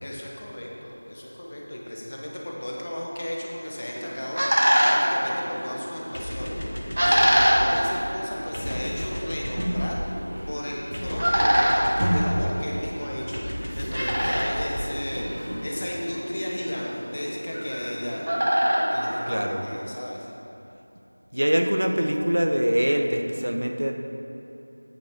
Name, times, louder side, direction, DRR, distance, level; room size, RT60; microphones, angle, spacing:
voice 1, 0.0-6.6 7.0-10.0 10.5-13.4 13.8-18.3 18.9-20.3, left 1 dB, 25° left, -2 dB, 0.9 m, -34 dB
sound 1, 3.7-19.9, equal, 45° right, 1.5 m, -26 dB
sound 2, 6.1-15.7, equal, 80° left, 1.5 m, -35 dB
sound 3, 8.3-9.9 10.2-11.5 11.9-12.9 13.5-15.9 16.3-16.7, equal, 20° right, 1.5 m, -32 dB
voice 2, 19.3-19.6 21.3-23.9, equal, 60° right, 4 dB, 0.9 m, -24 dB
9.1 x 9.0 x 3.7 m, 2.9 s
figure-of-eight pair, 175°, 0 cm